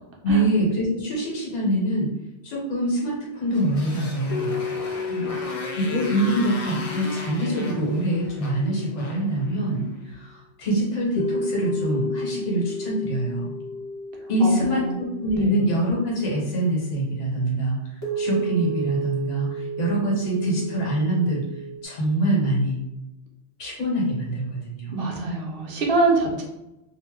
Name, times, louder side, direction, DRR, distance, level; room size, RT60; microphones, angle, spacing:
voice 1, 0.2-2.1 2.4-4.6 5.7-13.5 14.3-21.5 21.8-22.8 23.6-24.9, right 1 dB, 90° left, -3 dB, 1.2 m, -24 dB
Motorcycle, 3.5-10.0, left 3 dB, 60° left, 0.3 m, -37 dB
sound 1, 4.3-9.7 11.2-16.6 18.0-21.8, equal, 20° left, 0.8 m, -33 dB
voice 2, 14.4-14.9 15.4-15.6 24.9-26.4, right 3 dB, 60° right, -1 dB, 0.8 m, -24 dB
2.6 x 2.1 x 3.4 m, 0.92 s
omnidirectional pair, 1.2 m